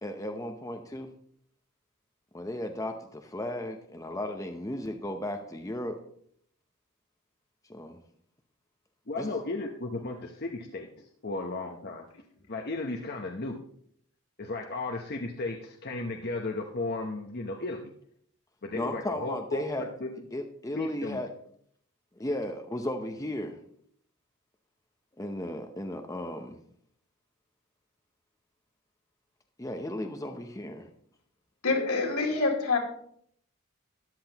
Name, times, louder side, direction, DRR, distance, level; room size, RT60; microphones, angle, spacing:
voice 1, 0.0-1.1 2.3-6.0 7.7-8.0 9.2-9.3 18.7-19.9 20.3-21.3 22.2-23.6 25.2-26.6 29.6-30.9, left 1 dB, 15° left, 4 dB, 0.7 m, -35 dB
voice 2, 9.1-12.0 12.5-13.6 14.4-17.9 18.6-20.1 20.8-21.2, left 2 dB, 45° left, 1 dB, 0.9 m, -35 dB
voice 3, 31.6-32.8, left 3 dB, 75° left, 0 dB, 2.6 m, -26 dB
13.5 x 11.0 x 2.9 m, 0.64 s
head